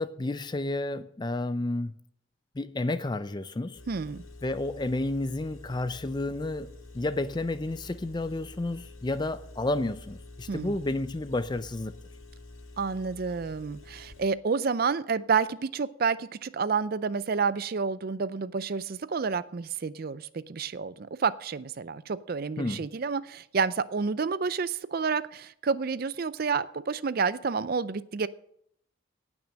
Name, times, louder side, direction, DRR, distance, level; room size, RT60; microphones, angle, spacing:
voice 1, 0.0-1.9 2.6-3.8 4.4-11.9 22.6-22.9, left 2 dB, 20° left, 0.4 m, -31 dB
Engine, 3.8-14.3, left 2 dB, 90° left, 1.8 m, -48 dB
voice 2, 3.9-4.2 10.5-10.8 12.8-28.3, right 5 dB, 45° right, 0.4 m, -29 dB
17.5 x 6.1 x 6.3 m
head